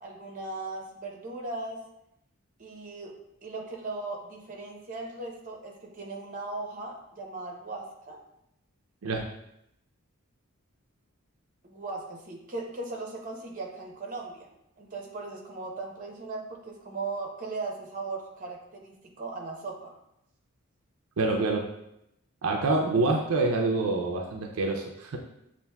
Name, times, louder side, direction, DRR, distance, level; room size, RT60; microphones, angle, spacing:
voice 1, 0.0-1.8 2.6-3.1 3.4-8.2 11.6-14.5 14.8-19.9, right 3 dB, 35° right, 0 dB, 0.8 m, -38 dB
voice 2, 21.2-21.7 22.4-25.2, right 3 dB, 75° right, 1 dB, 0.5 m, -26 dB
6.8 x 2.5 x 2.2 m, 0.81 s
head